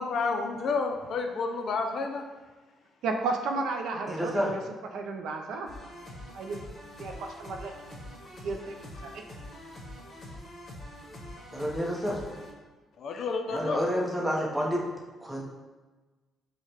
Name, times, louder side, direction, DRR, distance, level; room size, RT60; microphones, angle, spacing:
voice 1, 0.0-2.2 13.0-13.8, left 4 dB, 65° left, 4 dB, 0.4 m, -30 dB
voice 2, 3.0-4.6 4.9-5.7 6.3-6.6 7.0-7.7 8.4-9.2, right 3 dB, 85° right, 3 dB, 0.4 m, -33 dB
voice 3, 4.1-4.6 11.5-12.3 13.5-14.8 15.2-15.4, equal, 5° right, -2 dB, 0.7 m, -29 dB
sound 1, 5.7-12.5, left 1 dB, 45° left, 1.0 m, -44 dB
4.6 x 2.1 x 2.9 m, 1.3 s
cardioid pair, 90°, 0 cm